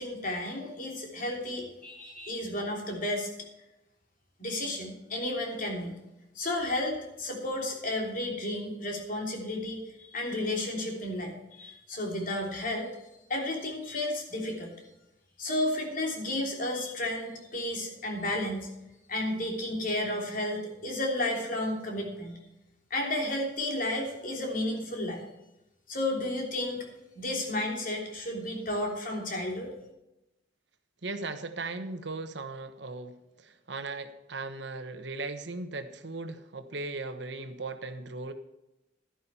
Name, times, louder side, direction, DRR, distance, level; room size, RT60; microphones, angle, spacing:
voice 1, 0.0-3.3 4.4-6.0 6.3-12.9 13.3-14.7 15.4-18.7 19.1-22.4 22.9-25.2 25.9-26.9 27.1-29.7, left 1 dB, 50° left, 0 dB, 3.2 m, -32 dB
voice 2, 31.0-33.1 33.4-38.3, right 3 dB, 70° right, 9 dB, 1.2 m, -37 dB
12.0 x 11.5 x 4.3 m, 0.93 s
head